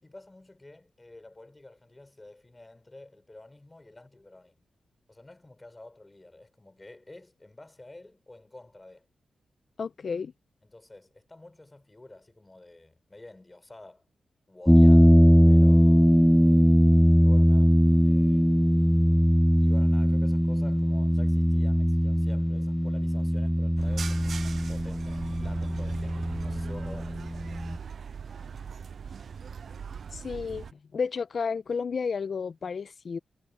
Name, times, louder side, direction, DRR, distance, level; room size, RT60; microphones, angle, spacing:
voice 1, 0.0-4.6 5.1-9.1 10.6-14.0 14.5-16.1 17.2-17.8 18.0-18.6 19.6-27.3, left 2 dB, 25° left, 4.9 m, -50 dB
voice 2, 9.8-10.3 30.1-30.7 30.9-33.2, left 5 dB, 60° left, 1.0 m, -31 dB
sound 1, 14.7-27.8, equal, ahead, 0.4 m, -21 dB
sound 2, 23.8-30.7, right 6 dB, 65° right, 0.3 m, -40 dB
supercardioid pair, 45°, 0 cm